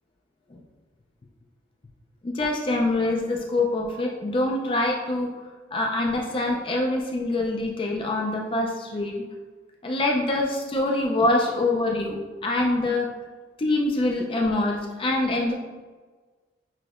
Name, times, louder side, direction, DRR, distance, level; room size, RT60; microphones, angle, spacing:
voice 1, 2.2-5.3 5.7-9.2 9.8-13.1 13.6-15.5, left 2 dB, 30° left, 1 dB, 0.3 m, -25 dB
5.9 x 2.8 x 2.4 m, 1.3 s
head